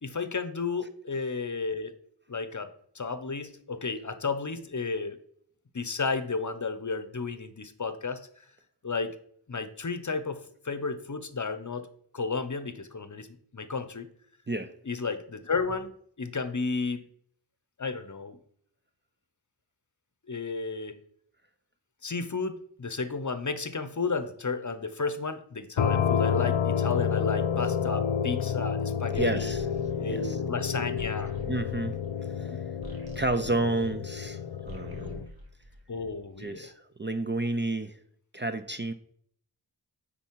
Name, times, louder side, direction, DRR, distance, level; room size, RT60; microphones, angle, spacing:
voice 1, 0.0-1.9 2.3-2.7 2.9-5.2 5.7-8.4 8.8-9.2 9.5-11.9 12.1-13.3 13.5-14.1 14.9-15.9 16.2-17.1 17.8-18.4 20.3-21.0 22.0-29.5 30.0-31.3 32.5-32.6 35.9-36.7, left 4 dB, 40° left, 11 dB, 0.7 m, -32 dB
sound 1, 25.8-35.3, left 7 dB, 90° left, 0.6 m, -29 dB
sound 2, 29.1-34.3 34.6-36.3, equal, 55° right, 1.9 m, -47 dB
voice 2, 29.2-29.6 30.1-30.4 31.5-32.6 33.2-35.3 36.4-38.0 38.3-38.9, right 2 dB, 25° right, 9 dB, 0.5 m, -31 dB
9.5 x 4.0 x 4.6 m, 0.65 s
wide cardioid pair, 60°, 44 cm